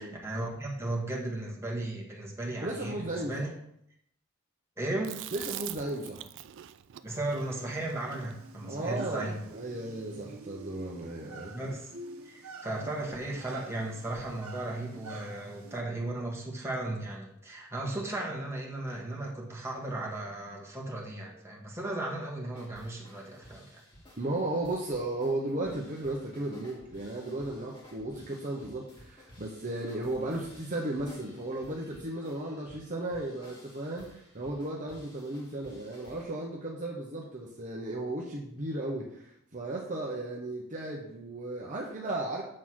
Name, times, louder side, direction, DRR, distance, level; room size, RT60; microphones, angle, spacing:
voice 1, 0.0-3.5 4.8-5.2 7.0-9.4 11.5-11.9 12.2-23.8, right 2 dB, 10° right, -2 dB, 1.6 m, -36 dB
voice 2, 2.6-3.5 5.3-6.2 8.6-11.6 24.2-42.4, right 2 dB, 35° right, -2 dB, 0.9 m, -35 dB
Chewing mastication, 5.0-9.4, right 11 dB, 60° right, 0.3 m, -43 dB
sound 1, 7.3-15.8, right 3 dB, 80° right, 0.9 m, -48 dB
sound 2, 22.5-36.3, left 1 dB, 25° left, 2.2 m, -55 dB
7.5 x 3.9 x 6.3 m, 0.72 s
head